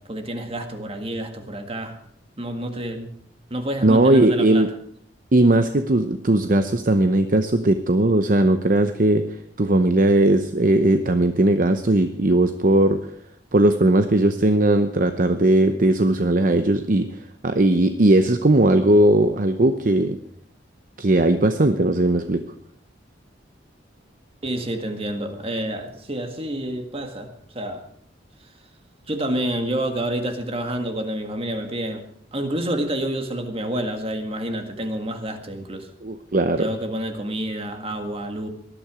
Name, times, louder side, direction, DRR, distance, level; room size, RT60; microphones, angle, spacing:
voice 1, 0.0-2.0 2.4-3.1 3.5-4.7 24.4-27.8 29.1-35.9 36.6-38.5, right 1 dB, 30° right, 6 dB, 1.8 m, -28 dB
voice 2, 3.8-4.7 5.3-9.2 9.6-13.0 13.5-17.1 17.4-20.2 21.0-22.4 36.0-36.7, right 1 dB, 45° right, 8 dB, 0.8 m, -18 dB
19.5 x 12.0 x 4.9 m, 0.66 s
head